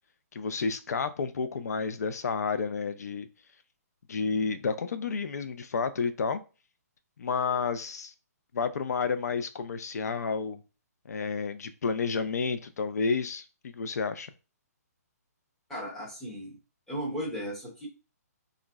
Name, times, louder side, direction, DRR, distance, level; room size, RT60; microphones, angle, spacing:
voice 1, 0.3-3.3 4.1-6.4 7.2-8.1 8.5-10.6 11.1-14.3, left 5 dB, 70° left, 11 dB, 0.4 m, -30 dB
voice 2, 15.7-16.6 16.9-17.9, equal, ahead, -6 dB, 0.5 m, -36 dB
3.6 x 2.0 x 2.2 m, 0.32 s
hypercardioid pair, 175°, 9 cm